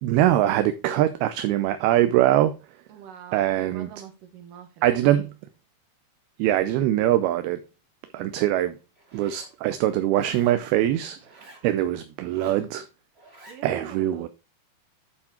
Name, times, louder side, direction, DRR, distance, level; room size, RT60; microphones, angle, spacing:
voice 1, 0.0-2.5 3.3-3.9 4.8-5.3 6.4-7.6 8.1-8.8 9.1-11.2 11.6-12.9 13.6-14.3, right 13 dB, 80° right, 2.4 m, -22 dB
voice 2, 2.9-5.3 13.5-14.3, right 8 dB, 60° right, 2.8 m, -44 dB
Zipper (clothing), 8.9-9.5 10.1-10.6 11.2-11.7 12.2-12.7 13.1-13.6, right 2 dB, 30° right, 1.2 m, -49 dB
11.0 x 4.6 x 4.2 m
omnidirectional pair, 4.8 m